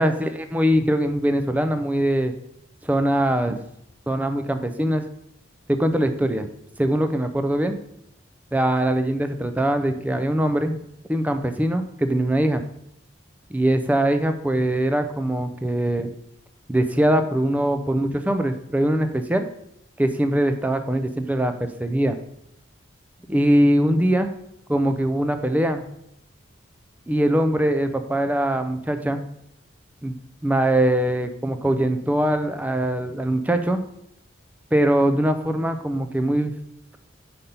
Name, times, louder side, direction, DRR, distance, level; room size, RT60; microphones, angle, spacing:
voice 1, 0.0-2.3 2.8-3.6 4.1-5.0 5.7-6.5 6.8-7.8 8.5-10.8 11.1-12.6 13.5-16.1 16.7-19.5 20.0-22.2 23.3-24.3 24.7-25.8 27.1-29.2 30.0-33.8 34.7-36.6, right 1 dB, 10° right, 8 dB, 0.4 m, -22 dB
5.3 x 4.3 x 5.3 m, 0.75 s
head